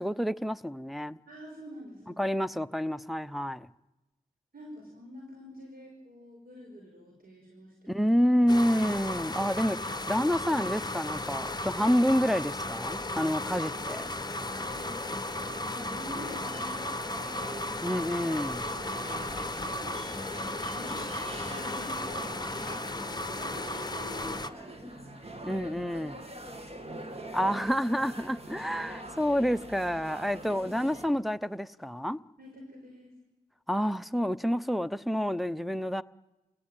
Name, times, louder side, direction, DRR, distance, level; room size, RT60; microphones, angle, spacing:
voice 1, 0.0-1.2 2.2-3.7 7.9-14.0 17.8-18.7 25.4-26.2 27.3-32.2 33.7-36.0, equal, ahead, 0.7 m, -28 dB
voice 2, 1.3-2.3 4.5-8.1 14.5-14.8 15.6-17.8 18.7-20.1 20.7-25.7 26.3-27.4 32.4-33.1, equal, 80° right, 5.2 m, -47 dB
sound 1, 8.5-24.5, left 2 dB, 25° left, 0.9 m, -35 dB
sound 2, 13.4-31.1, right 1 dB, 40° right, 2.5 m, -44 dB
26.0 x 17.0 x 9.1 m
cardioid pair, 50°, 15 cm